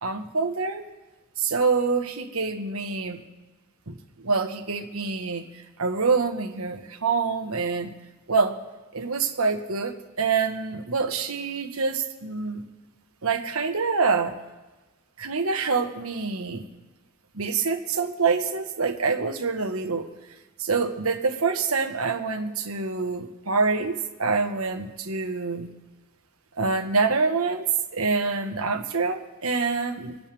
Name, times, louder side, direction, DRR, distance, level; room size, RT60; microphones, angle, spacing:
voice 1, 0.0-0.9 1.4-3.2 3.9-5.4 5.8-7.9 8.3-8.5 8.9-12.6 13.2-14.3 15.2-16.6 17.3-20.1 20.6-25.7 26.6-27.6 27.9-30.2, right 4 dB, 90° right, 5 dB, 1.4 m, -26 dB
26.0 x 9.4 x 3.5 m, 1.2 s
head